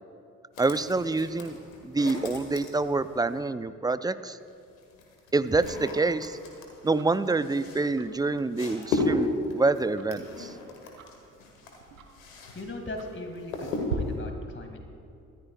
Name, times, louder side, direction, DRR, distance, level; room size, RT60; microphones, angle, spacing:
sound 1, 0.5-3.4 4.4-12.6 12.9-14.2, left 3 dB, 85° left, 1.6 m, -35 dB
voice 1, 0.6-1.6 1.8-4.4 5.3-6.4 6.8-10.6, right 3 dB, 10° right, 14 dB, 0.5 m, -27 dB
Tick-tock, 5.6-14.0, right 8 dB, 90° right, 0.8 m, -46 dB
voice 2, 12.5-14.8, left 2 dB, 30° left, 3 dB, 2.2 m, -39 dB
23.0 x 14.0 x 2.3 m, 2.5 s
figure-of-eight pair, 40°, 40 cm